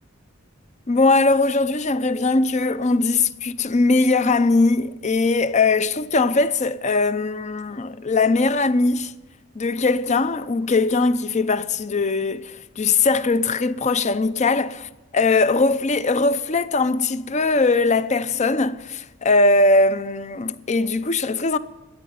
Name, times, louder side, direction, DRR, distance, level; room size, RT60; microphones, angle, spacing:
voice 1, 0.9-9.1 9.6-14.8 15.1-21.6, left 3 dB, 30° left, 0.6 m, -20 dB
13.0 x 8.7 x 10.0 m
head